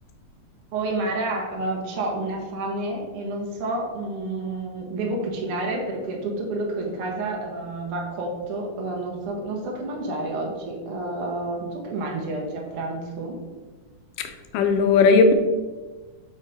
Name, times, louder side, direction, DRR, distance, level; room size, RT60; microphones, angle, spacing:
voice 1, 0.7-13.4, right 2 dB, 75° right, -1 dB, 1.3 m, -29 dB
voice 2, 14.2-15.3, left 4 dB, 80° left, 7 dB, 2.1 m, -18 dB
5.5 x 4.4 x 4.9 m, 1.3 s
omnidirectional pair, 4.0 m